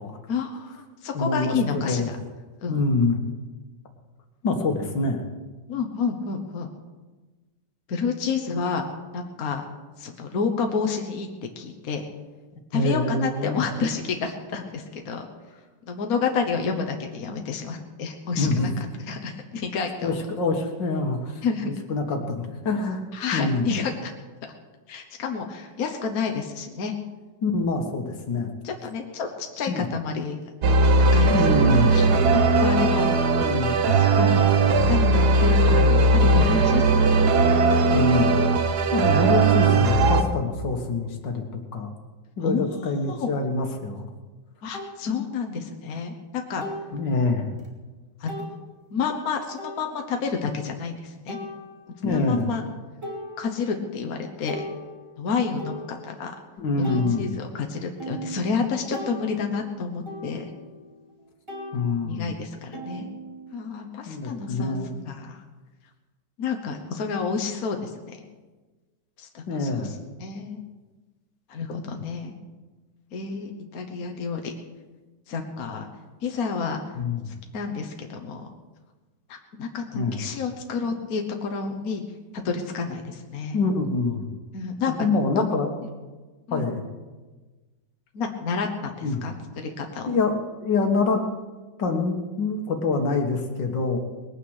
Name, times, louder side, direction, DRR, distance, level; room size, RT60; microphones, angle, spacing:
voice 1, 0.3-2.2 2.6-2.8 4.5-4.6 5.7-6.7 7.9-8.8 9.1-9.6 10.0-11.3 11.6-12.1 12.7-15.2 15.9-18.7 19.1-20.2 21.4-21.7 23.1-24.1 24.9-26.9 28.6-30.4 30.7-31.3 31.9-32.1 32.6-33.1 33.5-34.5 34.9-37.7 42.4-43.3 44.6-46.6 48.2-48.6 48.9-51.4 52.0-52.6 53.4-54.6 55.2-56.3 56.9-60.4 62.0-63.1 63.5-64.8 65.0-65.4 66.4-68.2 69.2-69.9 70.2-70.6 71.5-72.3 73.1-74.5 75.3-75.9 76.2-76.8 77.3-78.5 79.3-82.0 82.3-83.6 84.5-84.9 86.5-86.7 88.1-89.3 89.6-90.1, left 5 dB, 55° left, 3 dB, 1.6 m, -29 dB
voice 2, 1.1-2.1 2.7-3.2 4.4-5.2 12.7-13.6 18.4-18.7 20.0-23.0 23.3-23.7 27.4-28.5 29.7-29.9 31.3-31.9 33.4-33.8 37.9-38.4 38.9-41.4 41.7-41.9 42.4-44.1 46.9-47.5 52.0-52.5 56.6-57.3 61.7-62.3 64.1-65.1 69.5-69.9 76.9-77.3 79.9-80.2 83.5-84.3 84.9-85.7 86.5-86.9 89.0-89.2 90.1-91.2 91.8-94.0, left 3 dB, 75° left, 4 dB, 2.2 m, -25 dB
sound 1, 30.6-40.2, right 3 dB, 65° right, 1.5 m, -19 dB
sound 2, 44.7-44.9 46.6-47.0 47.6-47.7 48.3-48.5 49.6-50.2 51.3-52.1 52.6-52.7 53.0-53.9 54.2-56.4 56.8-61.2 61.5-63.8, equal, 15° right, 3.0 m, -39 dB
20.5 x 9.1 x 6.5 m, 1.3 s
omnidirectional pair, 2.0 m